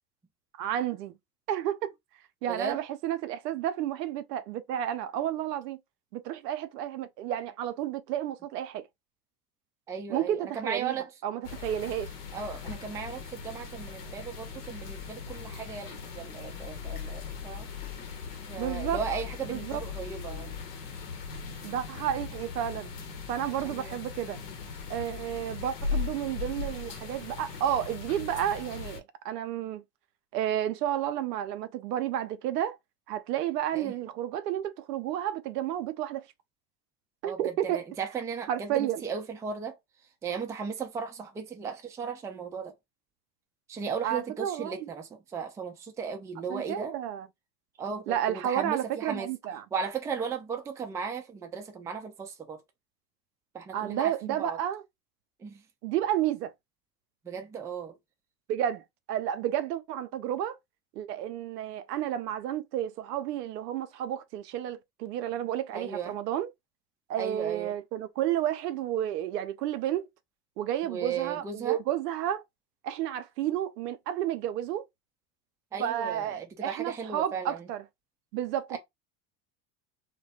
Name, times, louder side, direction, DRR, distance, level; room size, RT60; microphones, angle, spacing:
voice 1, 0.6-1.1 1.5-1.9 2.4-5.8 6.1-8.8 10.1-11.0 11.2-12.1 18.6-19.0 19.4-19.8 21.6-22.9 23.3-24.4 24.9-29.8 30.3-32.8 33.1-36.3 37.2-37.8 38.5-39.0 44.0-44.9 46.5-47.3 48.1-49.6 53.7-54.8 55.8-56.5 58.5-60.6 60.9-66.5 67.1-70.1 70.6-72.4 72.8-74.9 75.8-77.8 78.3-78.8, right 11 dB, 80° right, 0.6 m, -31 dB
voice 2, 2.5-2.8 9.9-11.1 12.3-17.7 18.5-20.6 23.6-24.0 33.7-33.9 37.2-39.8 40.2-42.8 43.7-47.0 47.8-49.3 49.7-52.6 53.5-54.6 55.4-55.6 57.2-58.0 65.7-66.2 67.2-67.8 70.8-71.8 75.7-77.7 78.7-78.8, right 6 dB, 10° right, 0.3 m, -36 dB
sound 1, 11.4-29.0, left 5 dB, 80° left, 0.9 m, -39 dB
2.2 x 2.1 x 2.7 m
hypercardioid pair, 80°, 47 cm